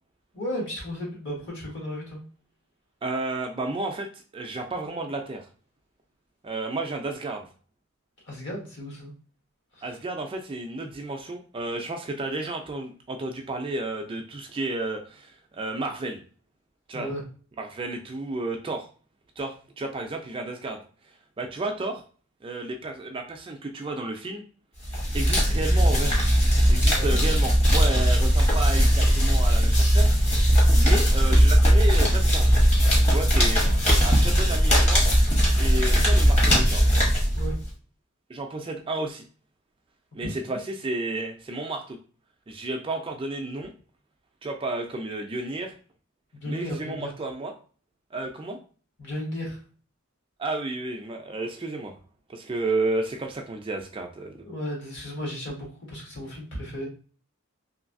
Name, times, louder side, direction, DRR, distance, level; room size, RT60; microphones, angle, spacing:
voice 1, 0.3-2.2 8.3-9.1 9.7-10.0 16.9-17.2 27.0-27.2 37.3-37.6 40.2-40.6 46.3-47.1 49.0-49.6 54.4-56.9, equal, 60° left, -2 dB, 1.3 m, -34 dB
voice 2, 3.0-4.1 4.3-5.5 6.4-7.5 9.8-16.2 16.9-17.1 17.6-18.9 19.4-20.8 21.4-22.0 22.4-24.4 25.1-26.1 26.7-30.1 30.3-32.5 33.0-33.7 34.0-35.1 35.5-36.9 38.3-39.2 40.1-42.0 42.5-43.7 44.4-45.7 46.5-47.5 48.1-48.6 50.4-51.9 52.3-54.4, right 2 dB, 25° right, 3 dB, 0.3 m, -32 dB
sound 1, 24.8-37.7, equal, 30° left, 1.0 m, -19 dB
3.1 x 2.6 x 2.5 m, 0.40 s
head